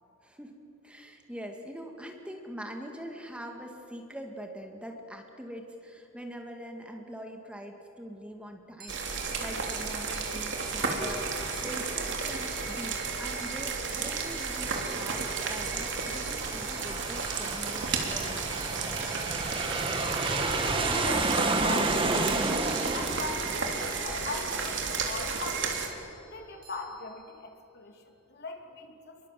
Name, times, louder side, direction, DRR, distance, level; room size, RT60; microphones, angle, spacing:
voice 1, 0.2-18.5, equal, 5° right, 3 dB, 2.2 m, -43 dB
sound 1, 8.8-27.6, right 3 dB, 45° right, 5.1 m, -50 dB
sound 2, 8.9-25.9, right 5 dB, 65° right, 3.2 m, -33 dB
Aircraft, 14.0-25.2, right 2 dB, 25° right, 1.7 m, -32 dB
voice 2, 19.5-22.4 22.9-25.8 26.3-29.2, left 3 dB, 55° left, 3 dB, 2.9 m, -40 dB
28.5 x 22.5 x 7.7 m, 2.8 s
head